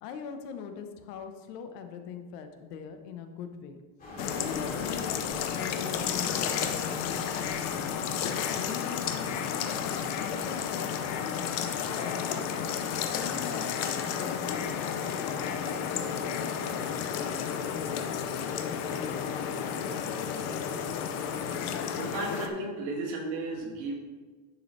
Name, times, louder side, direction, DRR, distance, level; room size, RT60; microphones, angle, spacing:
voice 1, 0.0-3.8 4.3-7.8 8.4-9.8 10.2-12.6 13.1-13.9 14.2-15.7, left 7 dB, 75° left, 7 dB, 1.1 m, -42 dB
sound 1, 4.0-13.2, equal, 15° left, 2.5 m, -49 dB
sound 2, 4.2-22.5, left 7 dB, 35° left, 0.5 m, -32 dB
voice 2, 21.9-23.9, right 2 dB, 65° right, 0 dB, 2.2 m, -34 dB
10.5 x 6.9 x 3.2 m, 1.4 s
cardioid pair, 175°, 48 cm